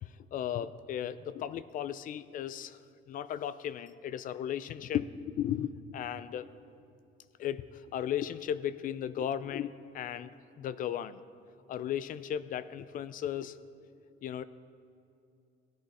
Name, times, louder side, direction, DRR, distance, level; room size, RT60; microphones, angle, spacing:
voice 1, 0.0-2.8 3.1-6.5 7.4-10.3 10.6-11.2 11.7-13.6 14.2-14.4, left 10 dB, 50° left, 15 dB, 0.4 m, -35 dB
18.5 x 11.0 x 4.2 m, 2.5 s
cardioid pair, 165°, 19 cm